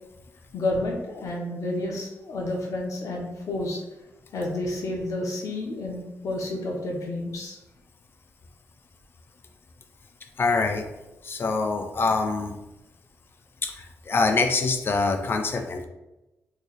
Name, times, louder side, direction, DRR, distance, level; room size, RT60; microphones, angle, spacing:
voice 1, 0.5-3.8 4.3-7.6, left 1 dB, 65° left, 0 dB, 0.8 m, -30 dB
voice 2, 10.4-10.9 11.2-12.6 13.6-15.8, left 3 dB, 40° left, 6 dB, 0.4 m, -25 dB
3.1 x 2.3 x 4.0 m, 0.99 s
wide cardioid pair, 145°, 6 cm